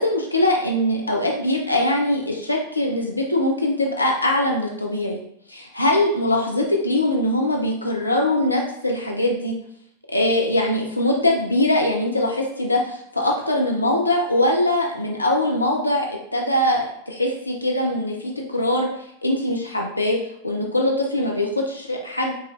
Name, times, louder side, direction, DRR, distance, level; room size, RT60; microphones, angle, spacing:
voice 1, 0.0-5.2 5.5-9.5 10.1-18.9 19.2-20.2 20.4-22.3, left 1 dB, 85° left, 0 dB, 0.5 m, -22 dB
4.7 x 3.1 x 2.4 m, 0.74 s
figure-of-eight pair, 90°, 0 cm